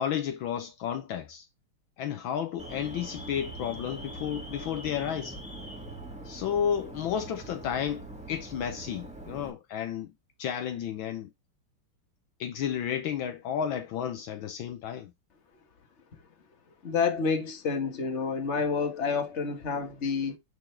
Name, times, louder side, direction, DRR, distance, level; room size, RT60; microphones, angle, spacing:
voice 1, 0.0-1.5 2.0-5.4 6.2-10.1 10.4-11.3 12.4-15.1, left 9 dB, 70° left, 1.5 m, -32 dB
Alarm, 2.6-9.5, right 1 dB, 5° right, 1.8 m, -42 dB
voice 2, 16.8-20.4, left 5 dB, 35° left, 1.6 m, -29 dB
10.0 x 4.1 x 3.3 m
omnidirectional pair, 2.4 m